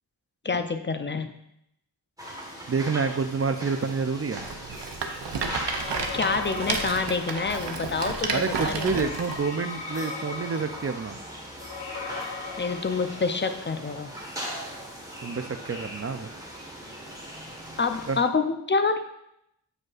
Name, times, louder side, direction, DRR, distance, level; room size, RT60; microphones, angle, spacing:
voice 1, 0.4-1.4 6.1-9.1 12.6-14.1 17.8-19.0, left 4 dB, 30° left, 8 dB, 0.5 m, -27 dB
sound 1, 2.2-18.2, equal, 10° right, 1.3 m, -40 dB
voice 2, 2.7-4.4 8.3-11.2 15.2-16.3 18.1-18.2, right 5 dB, 35° right, 8 dB, 0.4 m, -28 dB
Rattle, 4.3-9.4, right 4 dB, 90° right, 0.7 m, -32 dB
sound 2, 5.7-7.9 8.8-13.7, left 4 dB, 75° left, 0.7 m, -39 dB
7.7 x 5.0 x 2.4 m, 0.79 s
wide cardioid pair, 55°, 41 cm